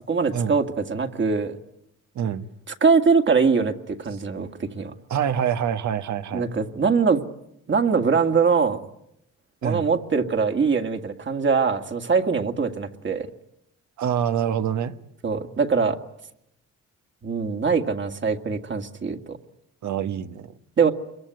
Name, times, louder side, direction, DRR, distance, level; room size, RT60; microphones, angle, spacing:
voice 1, 0.1-1.6 2.7-4.9 6.3-7.2 7.7-8.8 9.6-13.3 15.2-16.0 17.2-19.4 20.8-20.9, right 5 dB, 40° right, 5 dB, 2.1 m, -22 dB
voice 2, 2.1-2.5 5.1-6.5 9.6-9.9 14.0-14.9 19.8-20.5, right 8 dB, 70° right, 9 dB, 1.5 m, -26 dB
26.0 x 23.0 x 9.5 m, 0.82 s
cardioid pair, 90°, 30 cm